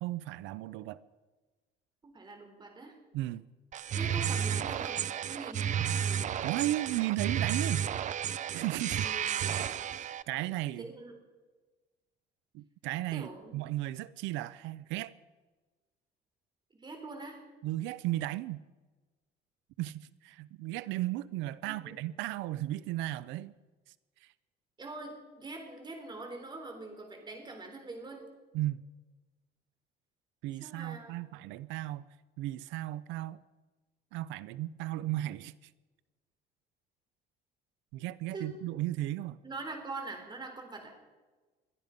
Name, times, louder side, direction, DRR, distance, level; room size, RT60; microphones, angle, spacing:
voice 1, 0.0-1.0 3.1-3.4 6.4-7.9 8.5-9.1 9.6-9.7 10.3-10.9 12.5-15.1 17.6-18.6 19.8-23.5 24.2-24.3 28.5-28.8 30.4-32.1 32.4-33.4 34.1-35.6 37.9-39.4, right 15 dB, 90° right, 0.6 m, -35 dB
voice 2, 2.0-3.0 4.0-6.2 9.0-9.8 10.8-11.1 13.1-13.6 16.7-17.4 21.6-21.9 24.8-28.3 30.6-31.1 38.3-38.5 39.4-40.9, right 3 dB, 25° right, 3.7 m, -44 dB
sound 1, 3.7-10.2, right 9 dB, 40° right, 0.5 m, -32 dB
22.0 x 12.0 x 5.2 m
cardioid pair, 125°, 19 cm